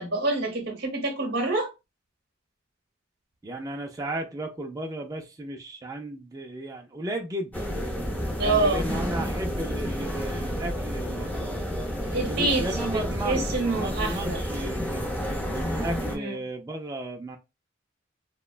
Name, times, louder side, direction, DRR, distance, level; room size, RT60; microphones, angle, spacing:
voice 1, 0.0-1.7 8.4-8.9 12.0-14.4 16.1-16.4, right 2 dB, 55° right, 0.9 m, -27 dB
voice 2, 3.4-7.7 8.4-11.3 12.1-15.0 15.5-17.4, right 1 dB, 20° right, 0.4 m, -34 dB
sound 1, 7.5-16.2, equal, 10° left, 0.7 m, -30 dB
3.0 x 2.1 x 2.4 m
head